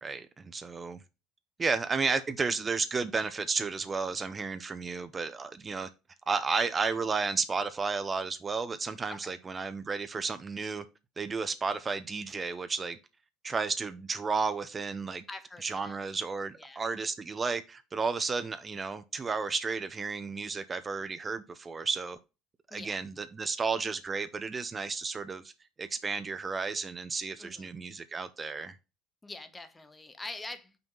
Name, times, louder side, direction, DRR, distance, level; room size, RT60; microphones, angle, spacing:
voice 1, 0.0-1.0 1.6-5.9 6.3-10.8 11.2-13.0 13.4-15.2 15.6-22.2 22.7-25.5 25.8-28.7, right 4 dB, 30° right, 0.6 m, -32 dB
voice 2, 15.3-16.0 16.5-16.8 22.7-23.0 27.4-27.7 29.2-30.8, left 2 dB, 20° left, 1.3 m, -44 dB
5.9 x 3.5 x 5.4 m
hypercardioid pair, 65°, 0 cm